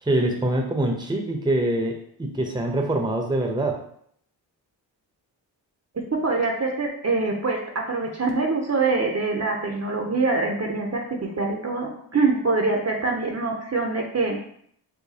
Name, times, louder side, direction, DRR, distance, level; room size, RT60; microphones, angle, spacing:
voice 1, 0.0-1.9 2.2-3.8, right 1 dB, 10° right, 2 dB, 0.8 m, -24 dB
voice 2, 5.9-14.4, right 3 dB, 35° right, 1 dB, 0.7 m, -24 dB
4.9 x 2.2 x 2.8 m, 0.65 s
supercardioid pair, 45°, 45 cm